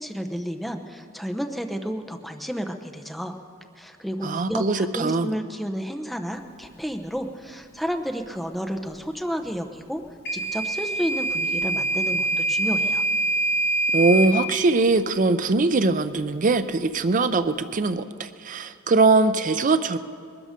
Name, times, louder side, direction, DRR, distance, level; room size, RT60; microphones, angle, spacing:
voice 1, 0.0-3.3 3.8-10.0 10.3-13.0, equal, ahead, 5 dB, 0.8 m, -31 dB
voice 2, 4.2-5.3 13.9-20.0, right 3 dB, 40° right, 11 dB, 0.5 m, -21 dB
Microwave oven / Alarm, 10.3-14.3, right 2 dB, 55° left, 1.4 m, -24 dB
20.5 x 13.0 x 5.1 m, 2.3 s
head